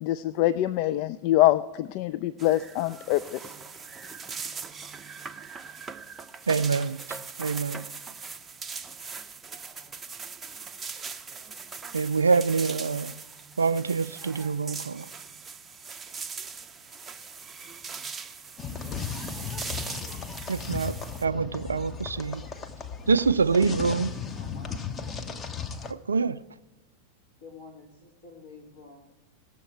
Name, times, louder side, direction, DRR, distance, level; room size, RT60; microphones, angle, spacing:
voice 1, 0.0-3.5, left 14 dB, 45° left, 0.3 m, -25 dB
sound 1, 2.4-21.3, right 5 dB, 20° right, 0.6 m, -40 dB
voice 2, 6.5-7.9 11.9-13.2 13.6-15.1 20.5-22.5 23.1-24.1 25.9-26.4, right 5 dB, 75° right, 0.4 m, -26 dB
sound 2, 18.6-25.9, left 6 dB, 25° left, 0.8 m, -36 dB
voice 3, 23.0-23.6 24.3-24.8 27.4-29.1, left 3 dB, 70° left, 3.4 m, -49 dB
18.5 x 7.0 x 4.6 m
figure-of-eight pair, 90°, 0 cm